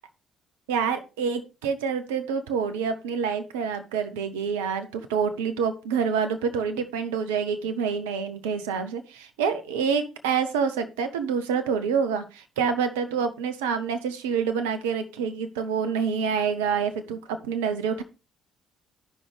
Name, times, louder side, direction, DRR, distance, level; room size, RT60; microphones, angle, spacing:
voice 1, 0.7-18.0, right 6 dB, 80° right, 9 dB, 0.8 m, -27 dB
13.5 x 5.4 x 3.3 m, 0.30 s
hypercardioid pair, 50°, 0 cm